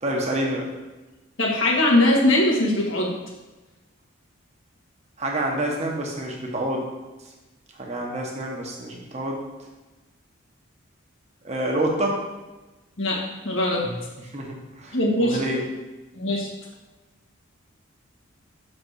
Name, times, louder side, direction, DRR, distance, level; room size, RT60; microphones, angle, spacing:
voice 1, 0.0-0.7 5.2-6.8 7.8-9.4 11.4-12.2 14.3-15.6, right 1 dB, 30° right, -1 dB, 1.2 m, -27 dB
voice 2, 1.4-3.1 13.0-13.2 13.4-14.0 14.9-15.4 16.1-16.5, left 1 dB, 65° left, -2 dB, 1.7 m, -21 dB
6.2 x 4.1 x 6.4 m, 1.1 s
head